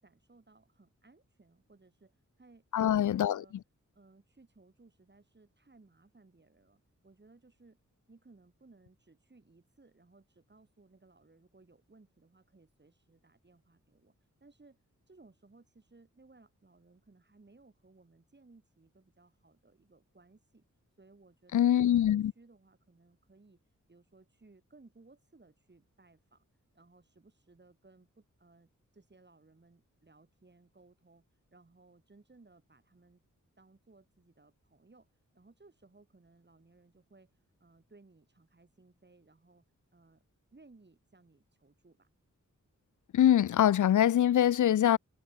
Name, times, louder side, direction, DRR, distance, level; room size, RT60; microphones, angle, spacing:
voice 1, 0.0-3.6 3.9-7.8 8.1-14.1 14.4-14.8 15.1-20.6 21.0-23.6 23.9-26.5 26.7-33.2 33.6-39.7 39.9-40.2 40.5-42.1, right 3 dB, 35° right, 6.7 m, -62 dB
voice 2, 2.7-3.4 21.5-22.3 43.1-45.0, left 11 dB, 75° left, 0.5 m, -24 dB
wide cardioid pair, 120°, 31 cm